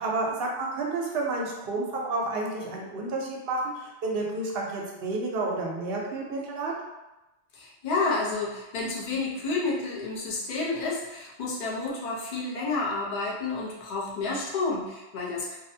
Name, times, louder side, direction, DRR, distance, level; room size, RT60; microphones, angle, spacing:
voice 1, 0.0-6.7, right 2 dB, 65° right, -1 dB, 0.7 m, -30 dB
voice 2, 7.5-15.6, left 3 dB, 50° left, -4 dB, 0.6 m, -30 dB
2.5 x 2.0 x 2.6 m, 1.0 s
omnidirectional pair, 1.2 m